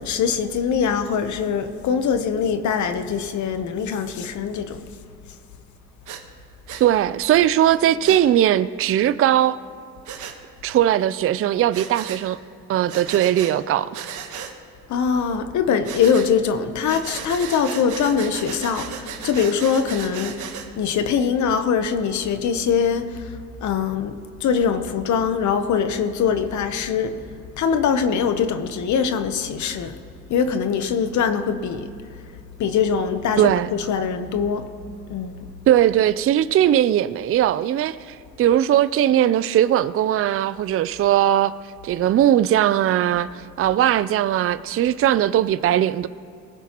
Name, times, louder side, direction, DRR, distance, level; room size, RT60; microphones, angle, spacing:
voice 1, 0.0-4.9 14.9-27.1 27.6-29.9 30.3-31.9 32.6-34.7 35.1-35.5, left 6 dB, 70° left, 0.9 m, -23 dB
Breathing, 6.1-6.2 6.7-6.9 8.0-8.2 10.1-10.4 11.7-12.2 12.9-13.5 13.9-14.5 15.8-16.3 16.9-20.7, right 8 dB, 80° right, 1.3 m, -35 dB
voice 2, 6.8-9.6 10.6-12.4 12.7-14.1 33.4-33.7 35.7-41.5 41.8-46.1, right 11 dB, 50° right, 0.4 m, -19 dB
19.5 x 16.0 x 3.0 m
cardioid pair, 90°, 30 cm